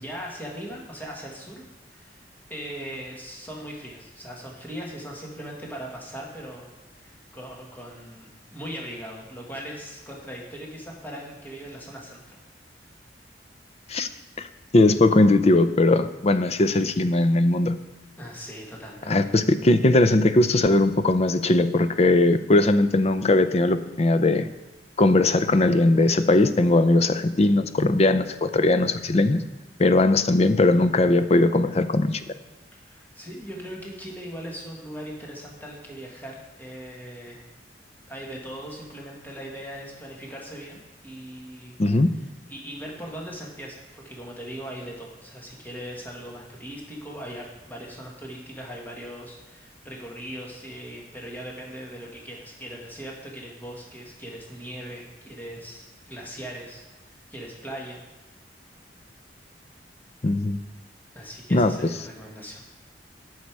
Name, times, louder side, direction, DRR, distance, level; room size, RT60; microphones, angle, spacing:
voice 1, 0.0-1.6 1.9-2.2 2.5-12.2 18.2-19.3 32.7-37.4 38.1-41.8 42.5-58.0 61.1-62.6, equal, 10° left, -2 dB, 1.8 m, -39 dB
voice 2, 14.7-17.8 19.1-24.5 25.0-29.4 29.8-32.2 41.8-42.1 60.2-60.6 61.5-61.7, left 2 dB, 35° left, 11 dB, 0.5 m, -19 dB
12.5 x 6.5 x 4.7 m, 1.1 s
head